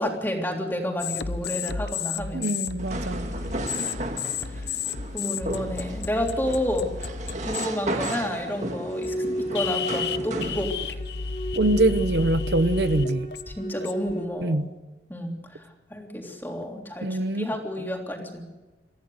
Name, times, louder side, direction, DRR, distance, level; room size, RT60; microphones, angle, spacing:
voice 1, 0.0-2.5 5.1-6.9 7.5-10.7 13.5-14.6 15.1-15.6 15.9-18.5, equal, 10° left, 3.3 m, -30 dB
sound 1, 1.0-7.7 8.0-8.4 9.0-9.1 9.5-14.1, left 5 dB, 75° left, 0.9 m, -32 dB
voice 2, 2.3-3.3 11.6-13.3 14.4-14.7 17.0-17.6, right 1 dB, 75° right, 0.9 m, -24 dB
sound 2, 2.8-10.6, right 1 dB, 40° right, 1.9 m, -34 dB
sound 3, 8.5-14.2, equal, 45° left, 3.1 m, -33 dB
25.0 x 15.0 x 7.9 m
head